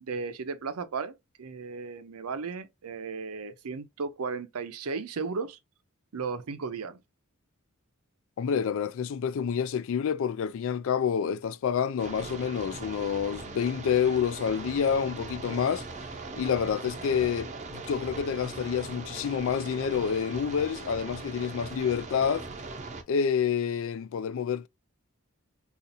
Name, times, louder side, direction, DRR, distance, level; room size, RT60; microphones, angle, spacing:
voice 1, 0.0-5.6 6.1-7.0, right 4 dB, 85° right, 0.6 m, -35 dB
voice 2, 8.4-15.8 16.4-22.5 23.1-24.7, left 7 dB, 65° left, 0.3 m, -28 dB
sound 1, 12.0-23.0, right 3 dB, 35° right, 0.6 m, -40 dB
4.0 x 2.4 x 2.6 m
head